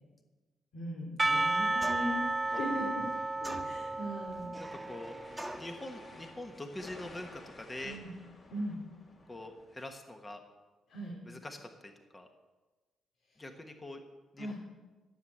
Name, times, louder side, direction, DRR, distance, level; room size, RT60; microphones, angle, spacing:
voice 1, 0.7-3.0 3.4-4.6 7.8-8.1 8.5-8.8 10.9-11.2 14.4-14.5, equal, 70° left, -2 dB, 2.9 m, -39 dB
Percussion / Church bell, 1.2-6.2, right 2 dB, 20° right, 0.3 m, -33 dB
sound 1, 1.8-2.3 3.4-4.1 5.4-5.8, right 1 dB, ahead, 1.6 m, -42 dB
sound 2, 4.2-9.9, left 2 dB, 40° left, 2.5 m, -53 dB
voice 2, 4.6-5.2 5.6-8.0 9.3-10.4 11.2-12.3 13.4-14.0 14.3-14.5, left 1 dB, 20° left, 5 dB, 1.3 m, -44 dB
13.0 x 7.8 x 8.6 m, 1.2 s
cardioid pair, 90°, 0 cm